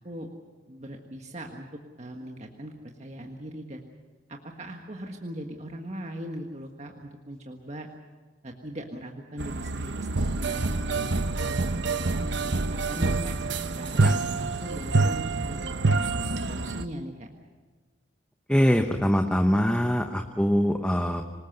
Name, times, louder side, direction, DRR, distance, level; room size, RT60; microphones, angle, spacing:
voice 1, 0.7-2.7 3.0-3.8 4.3-7.9 8.4-13.4 13.7-17.3, right 1 dB, 40° right, 2 dB, 1.6 m, -40 dB
sound 1, 9.4-16.8, right 3 dB, 75° right, 0.9 m, -27 dB
voice 2, 18.5-21.2, equal, 5° left, 4 dB, 1.0 m, -23 dB
26.0 x 19.5 x 6.8 m, 1.4 s
head